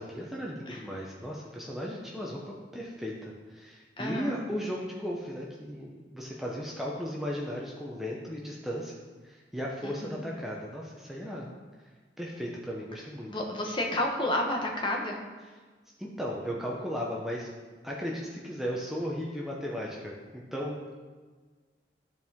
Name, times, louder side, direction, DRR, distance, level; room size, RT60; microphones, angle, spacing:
voice 1, 0.0-8.9 9.2-11.5 12.2-13.3 16.0-17.5 17.8-20.9, equal, ahead, -3 dB, 0.8 m, -36 dB
voice 2, 4.0-4.4 9.8-10.2 13.3-15.2, left 1 dB, 25° left, 0 dB, 1.1 m, -31 dB
13.0 x 4.6 x 3.6 m, 1.4 s
head